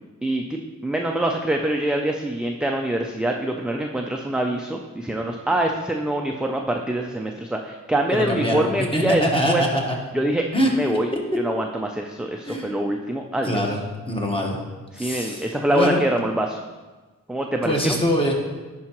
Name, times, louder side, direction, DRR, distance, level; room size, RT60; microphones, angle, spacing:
voice 1, 0.2-9.6 10.1-11.1 11.4-13.6 14.9-16.6 17.3-18.0, right 1 dB, 5° right, 2 dB, 0.3 m, -25 dB
voice 2, 8.1-10.0 10.5-10.7 11.1-11.2 12.4-12.7 13.4-13.8 14.1-14.6 15.0-16.0 17.6-18.3, equal, 15° left, 0 dB, 1.2 m, -23 dB
10.0 x 4.6 x 3.0 m, 1.3 s
wide cardioid pair, 100°, 32 cm